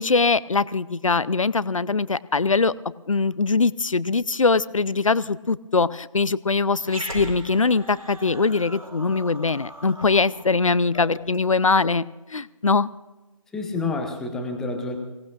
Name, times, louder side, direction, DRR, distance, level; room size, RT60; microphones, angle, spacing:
voice 1, 0.0-2.7 3.1-12.0 12.3-12.9, left 4 dB, 65° left, 18 dB, 0.6 m, -22 dB
Growling, 6.8-11.5, equal, 85° right, 5.5 m, -39 dB
voice 2, 13.5-15.0, left 3 dB, 5° left, 3 dB, 0.8 m, -29 dB
25.0 x 18.0 x 2.5 m, 1.1 s
figure-of-eight pair, 150°, 18 cm